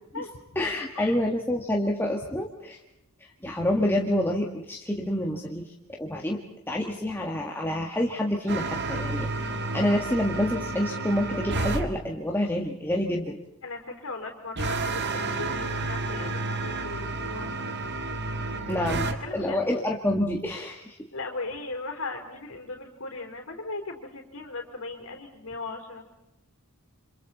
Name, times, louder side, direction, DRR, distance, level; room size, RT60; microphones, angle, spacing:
voice 1, 0.6-2.8 3.2-6.4 6.7-13.4 18.7-21.0, left 1 dB, 10° left, -1 dB, 1.8 m, -28 dB
sound 1, 8.5-11.9 14.6-19.2, right 3 dB, 55° right, 1.9 m, -30 dB
voice 2, 13.6-17.5 18.6-18.9 19.2-19.6 21.1-26.1, left 3 dB, 70° left, 1 dB, 4.0 m, -38 dB
29.5 x 26.5 x 4.2 m, 0.85 s
head